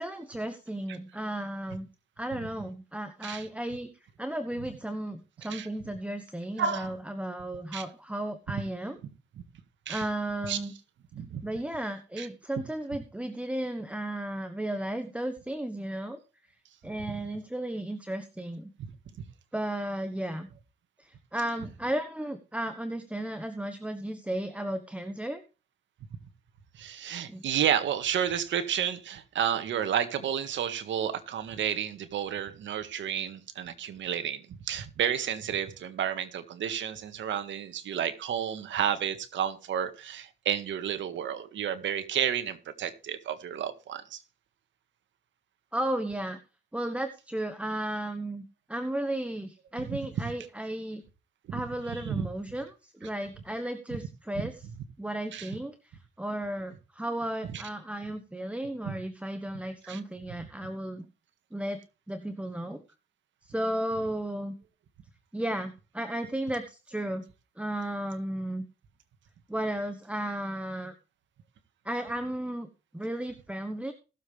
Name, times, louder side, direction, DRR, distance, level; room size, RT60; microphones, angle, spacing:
voice 1, 0.0-1.9 2.2-3.9 4.2-9.0 9.9-10.7 11.4-16.2 16.8-18.7 19.5-20.5 21.0-25.4 27.3-27.4 45.7-46.4 46.7-51.0 51.5-54.5 55.0-61.1 61.5-61.8 62.1-62.8 63.4-64.5 65.3-67.3 67.6-68.6 69.5-70.9 71.8-72.7 72.9-73.9, right 1 dB, 5° right, 9 dB, 1.2 m, -34 dB
voice 2, 6.6-6.9 7.7-7.8 9.9-10.1 10.5-10.6 11.2-11.4 12.2-12.3 17.1-17.2 18.8-18.9 26.7-44.2 49.9-50.3 51.5-51.6 51.9-52.3 54.3-54.5 55.3-55.5 57.5-57.6 58.9-59.0 59.8-60.0 60.6-60.7, right 9 dB, 70° right, 10 dB, 1.8 m, -31 dB
18.5 x 7.4 x 3.4 m, 0.32 s
cardioid pair, 90°, 20 cm